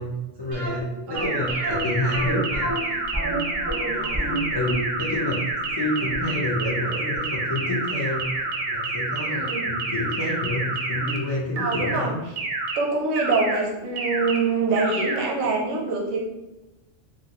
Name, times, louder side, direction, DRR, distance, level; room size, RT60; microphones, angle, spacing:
voice 1, 0.0-2.9 3.7-5.4 5.7-8.3 8.7-12.2, left 1 dB, 40° left, -6 dB, 0.3 m, -29 dB
sound 1, 0.5-7.4 7.6-7.7 8.3-8.4 8.7-8.8, right 1 dB, 20° right, 0.5 m, -31 dB
voice 2, 1.1-1.4 9.2-9.7 11.6-12.3 12.7-16.2, right 3 dB, 90° right, -2 dB, 1.0 m, -25 dB
sound 2, 1.2-11.2 11.6-12.0 12.4-12.8 13.2-13.6 14.0-14.4 14.8-15.2, right 3 dB, 65° right, 0.7 m, -28 dB
2.9 x 2.7 x 2.8 m, 1.0 s
omnidirectional pair, 1.3 m